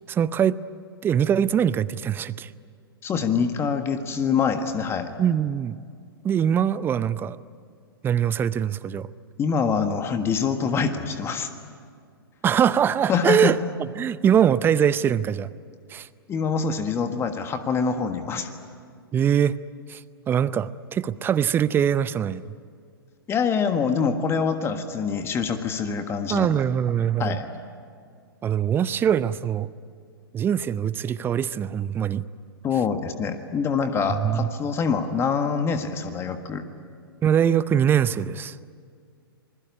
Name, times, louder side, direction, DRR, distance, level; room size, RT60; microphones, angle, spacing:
voice 1, 0.1-0.6 1.0-2.5 5.2-5.8 6.2-7.4 8.0-9.1 12.4-13.6 14.0-15.5 15.9-16.1 19.1-19.6 19.9-22.4 26.3-27.4 28.4-29.7 30.3-32.2 34.2-34.5 37.2-38.6, right 9 dB, 15° right, 17 dB, 0.6 m, -22 dB
voice 2, 3.0-5.1 9.4-11.5 13.1-13.6 16.3-18.5 23.3-26.6 27.2-27.5 32.6-36.6, left 6 dB, 20° left, 8 dB, 1.6 m, -25 dB
26.5 x 21.0 x 9.7 m, 2.1 s
figure-of-eight pair, 110°, 13 cm